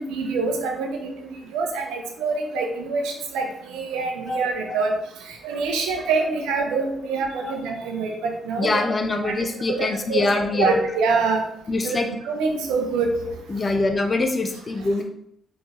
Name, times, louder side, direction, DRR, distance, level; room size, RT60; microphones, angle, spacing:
voice 1, 0.0-4.9 5.4-8.7 9.2-9.3 9.7-10.3 10.5-11.4 11.8-12.0 12.2-13.1, right 4 dB, 80° right, 3 dB, 0.6 m, -25 dB
voice 2, 8.6-10.8 11.7-12.1 13.5-15.0, left 2 dB, 40° left, 5 dB, 0.7 m, -24 dB
4.3 x 3.2 x 2.9 m, 0.73 s
hypercardioid pair, 45°, 0 cm